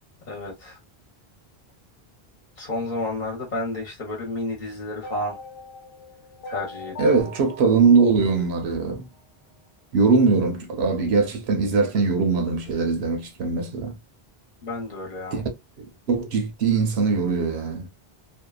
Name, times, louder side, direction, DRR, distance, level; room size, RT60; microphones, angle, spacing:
voice 1, 0.2-0.8 2.6-5.4 6.4-7.3 14.6-15.4, left 2 dB, 50° left, 0.9 m, -31 dB
sound 1, 5.0-9.2, left 2 dB, 85° left, 0.9 m, -41 dB
voice 2, 7.0-9.1 9.9-13.9 15.3-15.4 16.1-17.9, right 4 dB, 85° right, 1.0 m, -21 dB
2.7 x 2.2 x 2.2 m
omnidirectional pair, 1.0 m